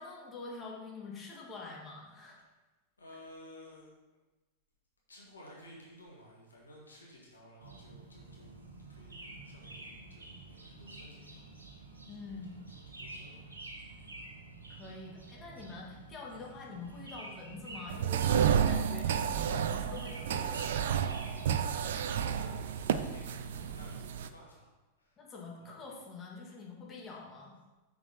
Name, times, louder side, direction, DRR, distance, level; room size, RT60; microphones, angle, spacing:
voice 1, 0.0-2.4 12.1-12.6 14.7-20.9 25.2-27.5, left 3 dB, 25° left, -2 dB, 2.0 m, -46 dB
voice 2, 3.0-3.9 5.1-11.5 12.3-12.6 13.0-13.5 22.1-24.7 25.0-25.2 25.6-25.8, equal, 75° left, -3 dB, 1.9 m, -55 dB
sound 1, 7.6-24.0, right 2 dB, 75° right, 1.1 m, -50 dB
sound 2, 17.9-24.3, right 8 dB, 60° right, 0.4 m, -31 dB
6.9 x 6.2 x 4.1 m, 1.1 s
figure-of-eight pair, 90°, 0 cm